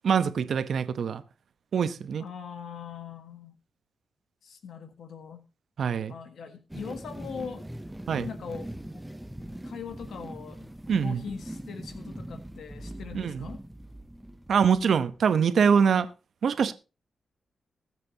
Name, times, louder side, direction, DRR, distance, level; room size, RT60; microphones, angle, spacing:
voice 1, 0.0-1.2 1.7-2.2 5.8-6.1 8.1-8.3 10.9-11.2 13.1-13.5 14.5-16.1 16.4-16.7, right 6 dB, 70° right, 1.0 m, -24 dB
voice 2, 2.2-3.5 4.4-5.4 6.1-7.7 8.2-9.0 9.6-10.7 11.0-13.6, left 6 dB, 80° left, 1.6 m, -41 dB
sound 1, 6.7-15.2, right 1 dB, 5° right, 0.7 m, -41 dB
21.0 x 7.6 x 2.9 m
cardioid pair, 90°, 0 cm